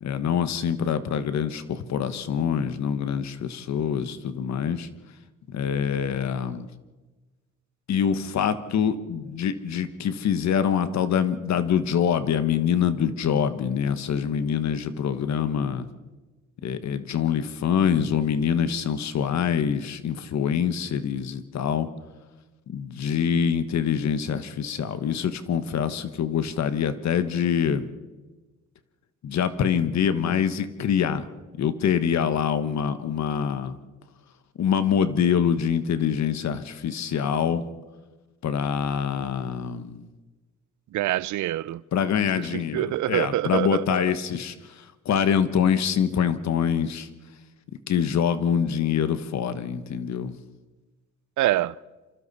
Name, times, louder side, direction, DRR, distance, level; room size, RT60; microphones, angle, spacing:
voice 1, 0.0-4.9 5.5-6.7 7.9-15.9 16.6-21.9 22.7-27.8 29.2-31.2 31.6-33.7 34.6-37.6 38.4-40.0 41.9-44.5 45.0-47.1 47.9-50.3, left 8 dB, 65° left, 1.3 m, -25 dB
voice 2, 40.9-41.8 42.3-44.0 51.4-51.8, right 14 dB, 70° right, 0.6 m, -26 dB
27.0 x 25.5 x 4.2 m
cardioid pair, 90°, 30 cm